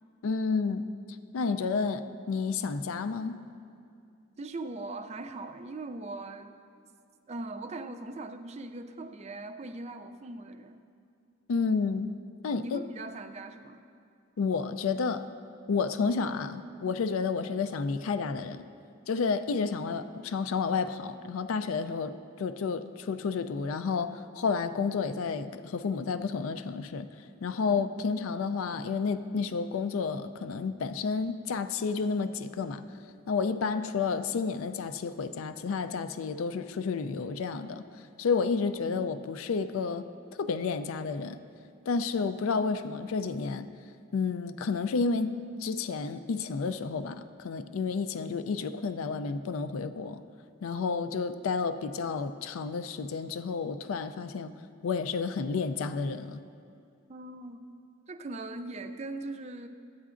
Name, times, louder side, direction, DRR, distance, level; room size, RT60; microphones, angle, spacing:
voice 1, 0.2-3.4 11.5-12.2 12.4-12.8 14.4-15.3 15.7-18.6 19.1-27.1 27.4-32.8 33.3-40.1 40.4-41.4 41.9-43.7 44.1-50.2 50.6-54.5 54.8-56.4, left 5 dB, 80° left, 12 dB, 0.4 m, -31 dB
voice 2, 4.4-6.6 7.3-10.8 12.6-13.8 27.6-27.8 57.1-57.6 58.1-59.7, right 2 dB, 30° right, 8 dB, 0.4 m, -40 dB
13.0 x 9.2 x 2.5 m, 2.5 s
head